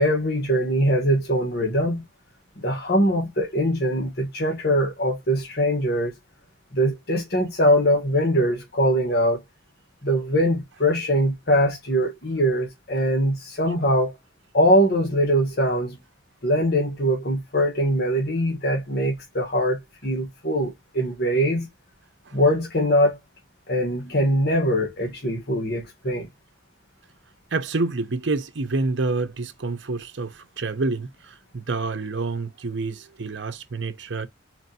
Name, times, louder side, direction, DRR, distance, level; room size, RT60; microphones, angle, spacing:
voice 1, 0.0-2.0 2.6-6.1 6.7-9.4 10.0-14.2 14.5-16.0 16.4-21.7 22.3-23.2 23.7-26.3, equal, 55° left, 1.3 m, -22 dB
voice 2, 27.5-34.3, right 3 dB, 65° right, 0.8 m, -28 dB
4.4 x 2.8 x 2.7 m
head